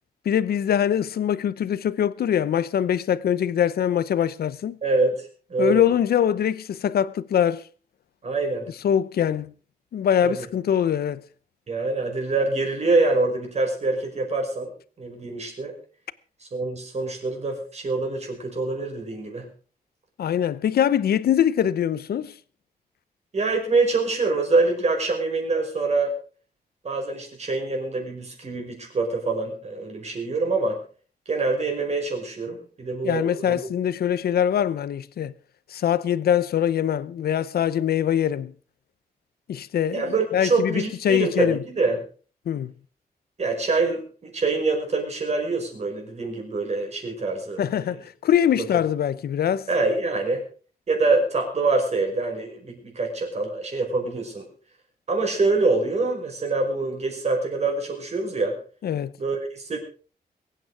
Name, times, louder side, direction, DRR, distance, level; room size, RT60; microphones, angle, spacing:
voice 1, 0.2-4.8 5.6-7.6 8.8-9.5 9.9-11.2 20.2-22.3 33.0-35.3 35.7-38.5 39.5-41.6 42.5-42.7 47.6-49.7 58.8-59.1, left 9 dB, 80° left, 0.7 m, -23 dB
voice 2, 4.8-5.8 8.2-8.7 10.2-10.4 11.7-14.7 15.0-15.8 16.4-19.5 23.3-26.1 26.8-30.8 31.3-33.6 39.9-42.0 43.4-47.6 48.6-48.7 49.7-50.4 50.9-54.4 55.1-58.6 59.2-59.8, right 3 dB, 45° right, 5.5 m, -25 dB
23.0 x 9.2 x 4.8 m
wide cardioid pair, 135°, 16 cm